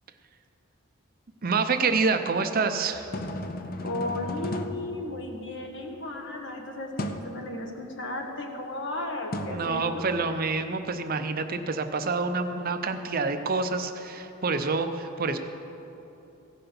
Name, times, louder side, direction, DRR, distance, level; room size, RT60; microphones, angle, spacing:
voice 1, 1.4-3.1 9.4-15.4, right 4 dB, 45° right, 8 dB, 0.6 m, -27 dB
sound 1, 2.9-5.8 7.0-7.4 9.3-10.4, left 1 dB, 45° left, 0.6 m, -36 dB
voice 2, 3.8-10.1, left 2 dB, 60° left, 2 dB, 1.5 m, -35 dB
16.0 x 5.8 x 6.9 m, 3.0 s
head